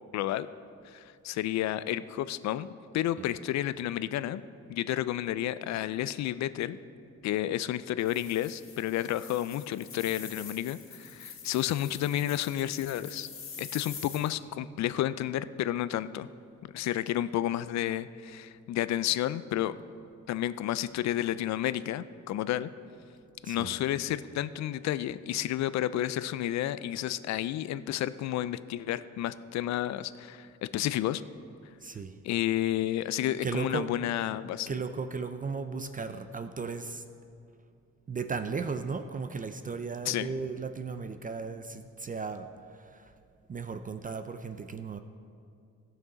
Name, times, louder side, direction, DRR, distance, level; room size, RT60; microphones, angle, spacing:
voice 1, 0.1-0.5 0.8-2.7 2.9-4.4 4.7-6.8 7.2-13.3 13.6-16.3 16.7-19.8 20.3-22.7 23.4-31.2 32.2-34.7 40.1-40.3, left 13 dB, 65° left, 15 dB, 0.4 m, -31 dB
sound 1, 8.0-14.3, left 6 dB, 45° left, 2.0 m, -45 dB
voice 2, 31.8-32.2 33.4-33.9 34.7-37.0 38.1-42.5 42.7-43.1 43.5-45.0, right 5 dB, 30° right, 9 dB, 0.4 m, -36 dB
17.0 x 6.0 x 4.0 m, 2.4 s
cardioid pair, 90°, 30 cm